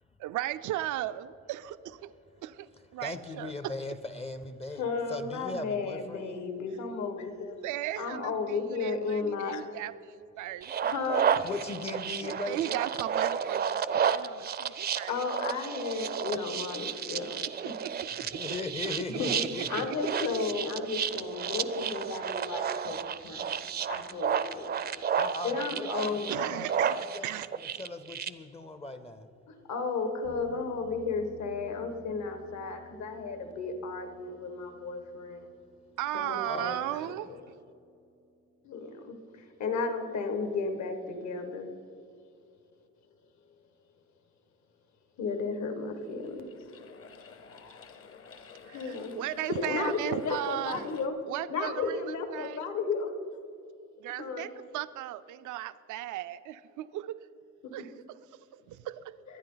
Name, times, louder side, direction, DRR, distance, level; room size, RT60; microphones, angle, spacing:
voice 1, 0.2-1.8 2.4-3.7 7.6-10.7 12.2-15.2 17.6-18.4 19.1-19.9 26.3-27.5 36.0-37.3 48.7-50.9 51.3-52.6 54.0-57.3 57.7-59.2, right 13 dB, 80° right, 13 dB, 0.5 m, -36 dB
voice 2, 3.0-4.8 5.1-6.5 11.4-12.8 18.3-19.9 20.2-20.3 25.2-26.9 27.1-27.3 27.8-29.3 36.4-36.8, left 2 dB, 20° left, 10 dB, 0.5 m, -38 dB
voice 3, 4.7-7.6 8.0-9.6 10.8-11.5 12.5-12.6 15.1-17.7 19.2-19.4 19.7-23.0 23.2-25.0 25.4-26.3 29.7-35.5 36.1-37.0 38.6-41.7 45.2-46.5 48.7-49.2 49.5-51.2 51.5-53.1 54.2-54.5 57.6-57.9, left 4 dB, 70° left, 7 dB, 1.6 m, -34 dB
sound 1, 10.6-28.3, right 8 dB, 35° right, 0.5 m, -32 dB
sound 2, 30.2-38.6, equal, 85° left, 3.8 m, -55 dB
sound 3, 45.9-51.1, left 5 dB, 45° left, 0.9 m, -50 dB
23.5 x 9.7 x 3.9 m, 2.6 s
cardioid pair, 160°, 30 cm